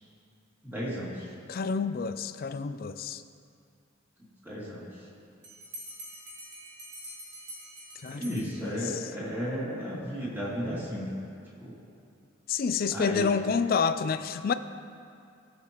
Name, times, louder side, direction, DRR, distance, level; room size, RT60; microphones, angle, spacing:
voice 1, 0.6-1.3 4.4-4.9 8.0-11.1 11.6-11.7 12.9-13.3, equal, 10° right, -8 dB, 2.5 m, -34 dB
voice 2, 1.5-3.2 8.0-9.0 12.5-14.5, left 5 dB, 50° left, 11 dB, 0.3 m, -29 dB
Bell, 5.4-9.1, equal, 55° right, 1.7 m, -45 dB
16.5 x 6.6 x 3.0 m, 2.4 s
head